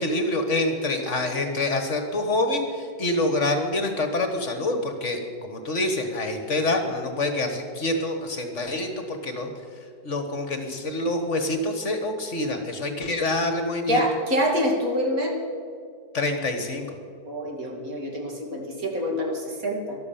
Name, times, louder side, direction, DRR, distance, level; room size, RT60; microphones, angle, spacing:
voice 1, 0.0-9.5 10.0-14.0 16.1-17.0, left 2 dB, 50° left, 6 dB, 1.6 m, -26 dB
voice 2, 13.9-15.4 17.3-20.0, equal, 60° right, 0 dB, 2.9 m, -26 dB
13.0 x 12.0 x 7.0 m, 2.3 s
omnidirectional pair, 1.7 m